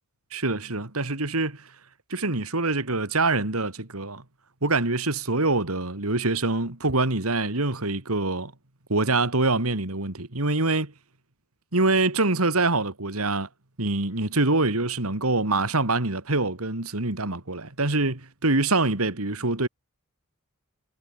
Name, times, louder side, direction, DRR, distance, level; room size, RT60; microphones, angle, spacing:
voice 1, 0.3-1.7 2.1-4.2 4.6-8.5 8.9-10.9 11.7-13.5 13.8-19.7, right 2 dB, 75° right, 2.9 m, -25 dB
head